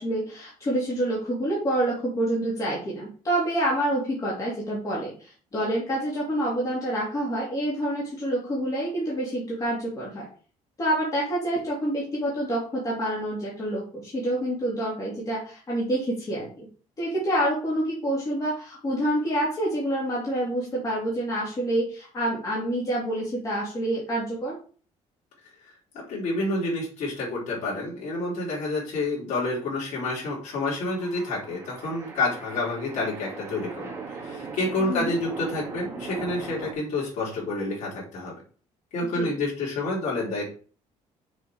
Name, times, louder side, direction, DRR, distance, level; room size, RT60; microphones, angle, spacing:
voice 1, 0.0-10.3 10.8-16.7 17.0-24.5 34.9-35.1 39.2-39.3, right 1 dB, 25° left, -6 dB, 2.7 m, -27 dB
voice 2, 25.6-38.3 38.9-40.5, left 2 dB, 65° left, -5 dB, 3.6 m, -29 dB
sound 1, 30.4-36.7, right 4 dB, 20° right, 1.9 m, -39 dB
6.4 x 5.1 x 4.7 m, 0.40 s
cardioid pair, 155°, 13 cm